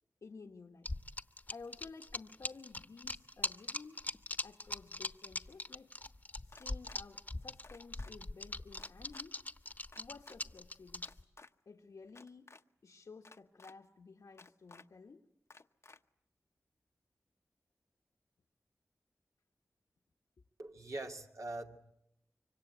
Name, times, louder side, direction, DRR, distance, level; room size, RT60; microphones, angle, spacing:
voice 1, 0.2-0.9 1.5-4.1 4.4-5.9 6.4-9.4 10.0-11.2 11.7-12.5 12.8-15.3, left 4 dB, 80° left, 2 dB, 1.3 m, -53 dB
sound 1, 0.9-11.2, left 2 dB, 30° left, 1.1 m, -40 dB
sound 2, 6.5-7.0 7.6-8.1 8.8-9.2 9.9-10.4 11.0-11.5 12.1-12.6 13.2-13.7 14.4-14.8 15.5-16.0, left 3 dB, 55° left, 0.9 m, -56 dB
voice 2, 20.6-21.8, right 2 dB, 65° right, 2 dB, 2.3 m, -43 dB
25.5 x 24.5 x 8.0 m, 0.81 s
wide cardioid pair, 60°, 6 cm